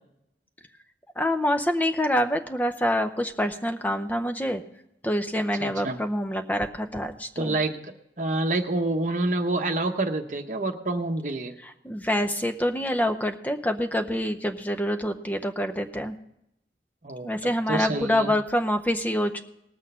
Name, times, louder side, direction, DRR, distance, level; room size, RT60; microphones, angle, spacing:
voice 1, 1.2-4.6 5.0-7.6 11.6-16.2 17.2-19.4, equal, 10° left, 8 dB, 0.6 m, -26 dB
voice 2, 5.6-6.0 7.4-7.8 8.2-11.5 17.0-17.3 17.7-18.3, right 2 dB, 45° right, 4 dB, 0.9 m, -27 dB
19.0 x 6.3 x 5.5 m, 0.83 s
head